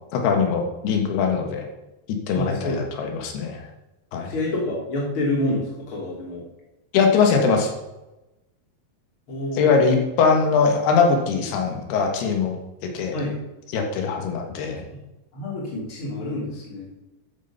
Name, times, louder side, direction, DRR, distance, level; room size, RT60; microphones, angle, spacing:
voice 1, 0.1-1.7 2.1-3.6 4.1-4.3 6.9-7.7 9.6-12.6 12.8-13.2 13.7-14.8, left 5 dB, 85° left, 3 dB, 3.6 m, -21 dB
voice 2, 2.3-2.8 4.3-6.4 9.3-9.6 13.1-13.4 15.3-16.9, left 1 dB, 35° left, -3 dB, 3.5 m, -27 dB
12.0 x 7.9 x 5.6 m, 1.0 s
omnidirectional pair, 4.5 m